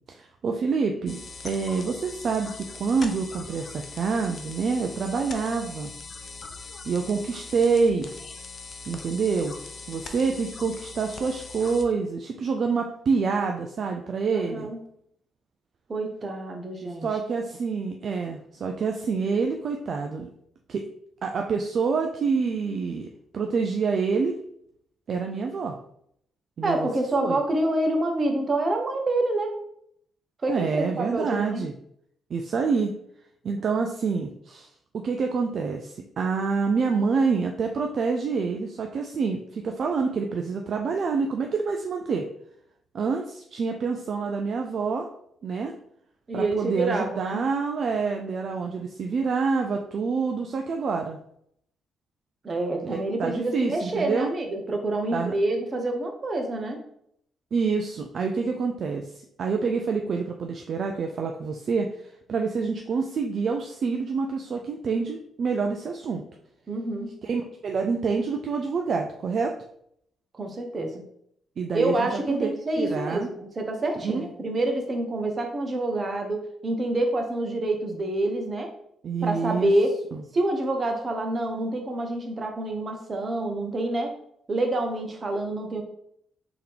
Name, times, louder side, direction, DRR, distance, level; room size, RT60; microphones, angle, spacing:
voice 1, 0.1-5.9 6.9-8.1 8.9-9.6 9.9-14.7 17.0-20.3 20.7-20.9 21.2-23.1 23.3-24.4 25.1-25.8 26.6-26.9 27.2-27.4 30.5-31.7 32.3-32.9 33.4-34.7 34.9-42.3 42.9-45.1 45.4-45.7 46.3-51.2 52.9-54.3 55.1-55.4 57.5-61.9 62.3-66.2 67.2-69.5 71.6-72.5 72.8-73.3 74.0-74.3 79.0-79.7 80.1-80.2, right 5 dB, 60° right, 3 dB, 0.4 m, -27 dB
sound 1, 1.1-11.8, left 3 dB, 50° left, 0.5 m, -41 dB
voice 2, 14.3-14.8 15.9-17.1 26.6-29.6 30.4-31.7 46.3-47.4 52.4-56.8 66.7-67.1 70.3-71.0 71.7-78.7 79.2-80.0 80.3-84.1 84.5-85.8, right 2 dB, 40° right, 3 dB, 0.9 m, -27 dB
3.6 x 2.9 x 3.5 m, 0.71 s
supercardioid pair, 65°, 0 cm